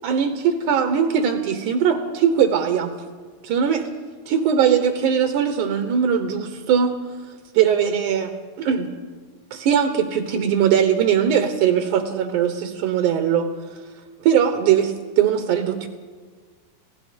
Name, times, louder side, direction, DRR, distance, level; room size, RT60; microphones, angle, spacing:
voice 1, 0.0-2.9 3.4-3.9 4.3-7.0 7.5-8.9 9.5-13.5 14.2-15.9, right 8 dB, 65° right, 6 dB, 2.4 m, -20 dB
29.5 x 17.0 x 5.2 m, 1.5 s
omnidirectional pair, 4.4 m